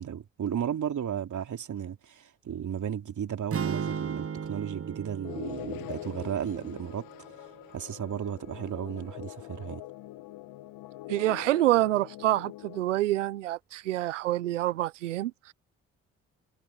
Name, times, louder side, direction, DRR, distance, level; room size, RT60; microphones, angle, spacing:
voice 1, 0.0-7.1 7.7-9.8, right 9 dB, 55° right, 3.3 m, -34 dB
sound 1, 3.5-7.7, right 6 dB, 40° right, 1.5 m, -36 dB
sound 2, 5.2-12.8, left 16 dB, 70° left, 2.2 m, -43 dB
voice 2, 11.1-15.5, right 15 dB, 90° right, 0.9 m, -27 dB
hypercardioid pair, 40°, 36 cm